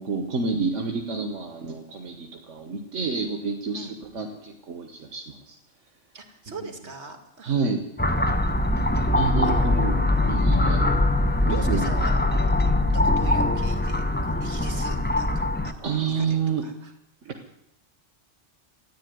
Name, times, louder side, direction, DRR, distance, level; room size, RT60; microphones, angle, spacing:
voice 1, 0.0-5.5 7.4-7.8 9.1-10.9 11.4-11.8 15.8-16.6 17.2-17.5, right 5 dB, 80° right, 3 dB, 1.6 m, -29 dB
voice 2, 6.1-7.6 9.2-9.7 10.1-10.5 11.5-12.6 12.9-16.9, right 3 dB, 65° right, 4 dB, 2.6 m, -41 dB
sound 1, 8.0-15.7, left 2 dB, 10° left, 0.6 m, -22 dB
14.0 x 10.5 x 9.3 m, 0.83 s
omnidirectional pair, 1.2 m